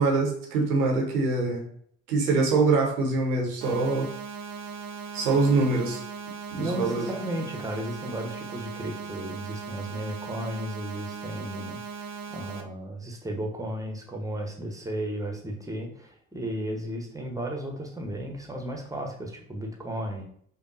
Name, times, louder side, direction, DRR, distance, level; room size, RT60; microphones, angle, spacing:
voice 1, 0.0-1.6 2.1-4.1 5.1-6.0 6.5-7.0, right 3 dB, 80° right, 1 dB, 0.8 m, -24 dB
sound 1, 3.6-12.6, right 5 dB, 45° right, 0.7 m, -38 dB
voice 2, 6.6-20.2, right 1 dB, 10° right, 2 dB, 0.8 m, -34 dB
5.1 x 2.3 x 2.6 m, 0.64 s
figure-of-eight pair, 45°, 44 cm